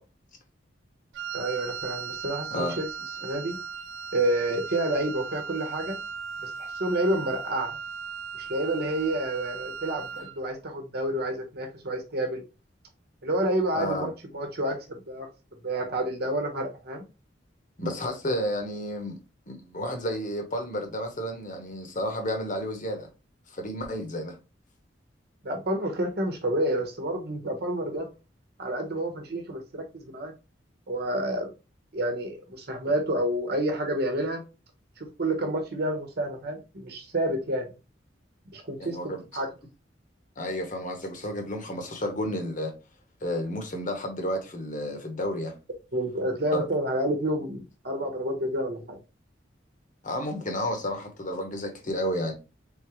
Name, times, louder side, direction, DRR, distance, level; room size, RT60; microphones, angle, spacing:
Wind instrument woodwind instrument, 1.1-10.4, right 5 dB, 75° right, 0.4 m, -37 dB
voice 1, 1.3-2.9 3.2-3.6 4.1-6.0 6.4-7.8 8.4-12.4 13.2-15.3 15.6-17.0 25.4-28.1 28.6-30.3 30.9-31.5 31.9-34.4 35.0-37.7 38.5-39.5 45.9-49.0, right 1 dB, 60° right, 1.0 m, -29 dB
voice 2, 13.7-14.1 17.8-19.2 19.5-23.1 23.5-24.4 38.8-39.2 40.4-42.7 43.2-45.5 46.5-46.6 50.0-52.3, equal, 45° left, 1.1 m, -31 dB
3.8 x 3.8 x 3.1 m
head